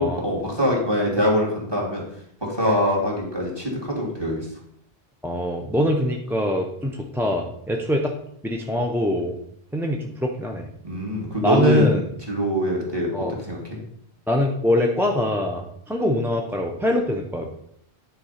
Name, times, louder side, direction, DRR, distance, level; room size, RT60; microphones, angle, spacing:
voice 1, 0.0-2.0 2.4-4.5 10.8-11.9 12.3-13.1 13.4-13.6, equal, 25° right, -3 dB, 2.4 m, -23 dB
voice 2, 5.2-8.1 8.4-9.4 9.7-10.7 11.4-12.1 13.1-13.4 14.3-17.5, left 1 dB, 5° right, 1 dB, 0.5 m, -23 dB
9.6 x 3.9 x 5.7 m, 0.71 s
omnidirectional pair, 1.1 m